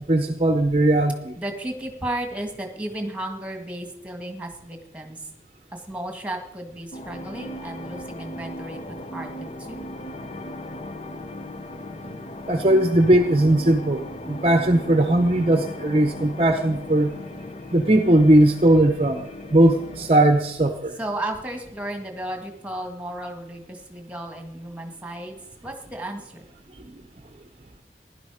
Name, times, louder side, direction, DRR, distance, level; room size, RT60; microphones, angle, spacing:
voice 1, 0.1-1.3 12.1-12.2 12.5-17.1 17.7-21.0, right 1 dB, 35° right, 7 dB, 0.8 m, -19 dB
voice 2, 1.4-5.3 5.7-9.9 21.0-26.5, right 1 dB, 10° right, 4 dB, 1.7 m, -34 dB
sound 1, 6.9-20.2, left 1 dB, 35° left, 0.7 m, -37 dB
16.0 x 11.5 x 4.9 m, 0.84 s
head